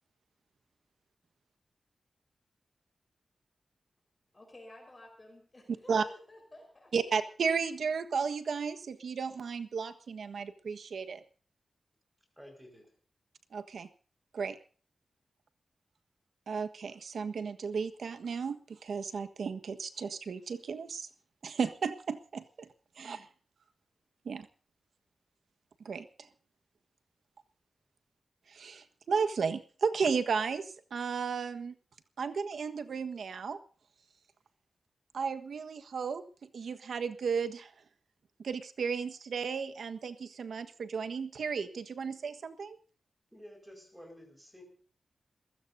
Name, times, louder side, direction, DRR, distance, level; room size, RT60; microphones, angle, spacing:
voice 1, 4.3-6.9, left 1 dB, 25° left, 2 dB, 4.7 m, -52 dB
voice 2, 6.9-11.2 13.5-13.9 14.3-14.5 16.5-21.1 21.4-22.7 23.0-23.3 24.2-24.5 25.8-26.0 28.5-31.7 32.2-33.6 35.1-36.2 36.5-37.7 38.4-42.8, right 5 dB, 85° right, 9 dB, 1.4 m, -34 dB
voice 3, 12.4-12.9 43.3-44.6, equal, 5° right, 3 dB, 5.2 m, -52 dB
28.0 x 16.0 x 2.7 m, 0.40 s
wide cardioid pair, 160°, 0 cm